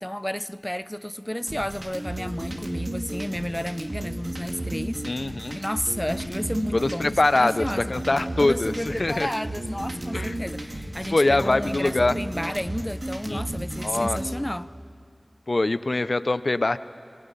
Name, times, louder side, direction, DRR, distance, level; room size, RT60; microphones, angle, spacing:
voice 1, 0.0-5.0 5.5-7.9 8.4-14.7, equal, 10° left, 0.4 m, -31 dB
sound 1, 1.5-14.4, right 1 dB, 50° right, 2.1 m, -33 dB
voice 2, 5.0-5.6 6.7-9.3 10.1-10.4 11.1-12.2 13.3-13.4 13.8-14.2 15.5-16.8, left 2 dB, 60° left, 0.5 m, -23 dB
27.5 x 21.0 x 5.5 m
wide cardioid pair, 50°, 0 cm